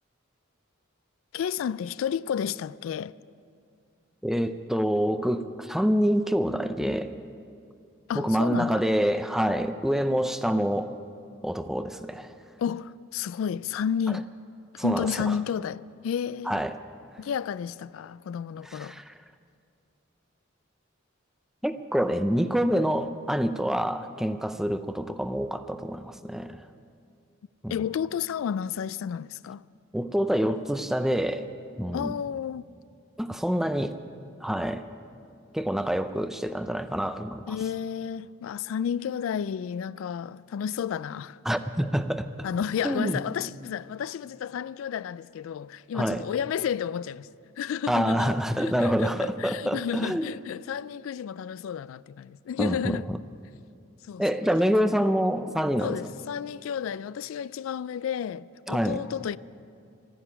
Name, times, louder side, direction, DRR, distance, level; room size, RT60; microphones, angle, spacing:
voice 1, 1.3-3.1 8.1-8.9 12.6-14.3 14.7-16.6 17.2-19.0 27.7-29.6 31.9-32.6 37.5-41.4 42.4-47.3 47.6-53.1 54.1-54.2 55.8-59.4, left 8 dB, 80° left, 0.3 m, -31 dB
voice 2, 4.2-7.1 8.1-11.0 11.4-12.3 14.8-15.3 16.5-16.7 18.7-19.1 21.6-26.6 27.6-27.7 29.9-31.5 31.8-32.1 33.2-34.0 34.4-34.8 35.5-37.5 41.5-42.3 42.8-43.2 45.9-46.2 47.9-50.3 52.6-53.2 54.2-56.0 58.7-59.0, equal, ahead, 0.4 m, -26 dB
13.0 x 10.0 x 9.8 m
head